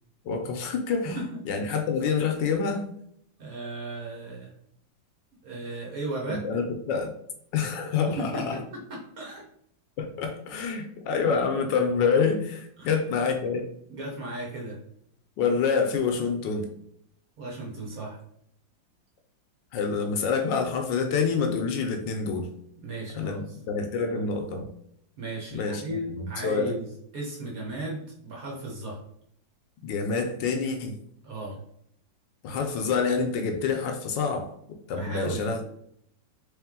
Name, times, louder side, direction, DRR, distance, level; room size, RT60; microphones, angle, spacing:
voice 1, 0.2-1.2 1.5-2.9 6.3-7.1 7.5-8.6 10.0-13.7 15.4-16.7 19.7-22.5 23.2-24.7 25.5-25.8 26.4-26.7 29.8-31.0 32.4-34.5 34.9-35.7, left 5 dB, 75° left, 4 dB, 1.2 m, -27 dB
voice 2, 3.4-4.5 5.4-6.4 8.0-8.6 8.9-9.4 12.8-12.9 13.9-14.8 17.4-18.2 22.8-23.6 25.2-29.0 31.2-31.6 34.9-35.7, right 2 dB, 55° right, -3 dB, 1.3 m, -35 dB
3.3 x 3.2 x 3.6 m, 0.70 s
omnidirectional pair, 2.1 m